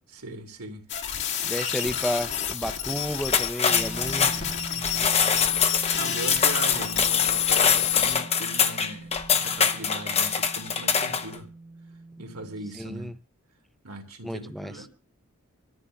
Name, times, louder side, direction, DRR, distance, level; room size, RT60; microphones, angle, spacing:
voice 1, 0.1-0.8 4.7-5.4 5.9-11.5 12.2-13.1 13.8-15.0, right 2 dB, 80° right, 2.5 m, -39 dB
sound 1, 0.9-8.2, left 9 dB, 55° left, 1.6 m, -29 dB
voice 2, 1.4-4.3 12.8-13.2 14.2-14.8, equal, ahead, 0.6 m, -32 dB
sound 2, 3.2-11.3, left 6 dB, 30° left, 0.8 m, -24 dB
sound 3, 3.7-12.7, right 2 dB, 30° right, 0.8 m, -42 dB
25.5 x 14.0 x 2.3 m
head